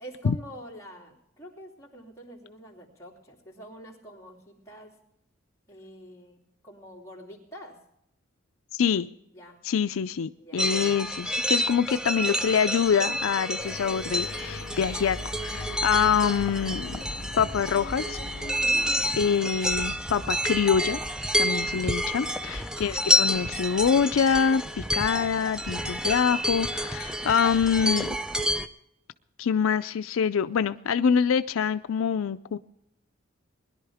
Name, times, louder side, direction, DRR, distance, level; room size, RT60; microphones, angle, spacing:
voice 1, 0.0-5.0 5.7-7.8 9.3-9.6 10.4-10.8 15.6-15.9 18.6-19.3 21.4-21.8 22.6-22.9, equal, 15° left, -4 dB, 2.9 m, -46 dB
voice 2, 8.7-9.1 9.6-17.0 17.4-18.2 19.2-21.0 21.4-28.2 29.4-32.6, left 7 dB, 75° left, 11 dB, 0.4 m, -25 dB
sound 1, 10.6-28.7, equal, 5° right, 0.4 m, -29 dB
sound 2, 13.6-19.1, left 2 dB, 60° left, 0.8 m, -39 dB
20.5 x 11.5 x 3.5 m, 0.76 s
head